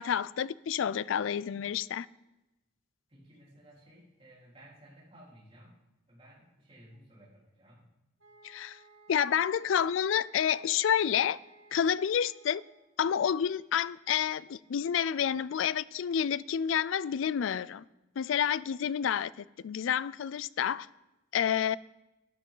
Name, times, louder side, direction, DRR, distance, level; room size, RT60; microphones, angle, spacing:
voice 1, 0.0-2.1 8.4-8.8 9.1-11.4 11.7-12.6 13.0-17.8 18.2-19.3 19.6-20.9 21.3-21.8, left 8 dB, 75° left, 0.3 m, -29 dB
voice 2, 3.1-5.8 6.1-7.8, right 1 dB, 30° right, 3.9 m, -56 dB
sound 1, 8.2-12.9, right 2 dB, 80° right, 2.2 m, -58 dB
12.5 x 10.5 x 3.9 m
head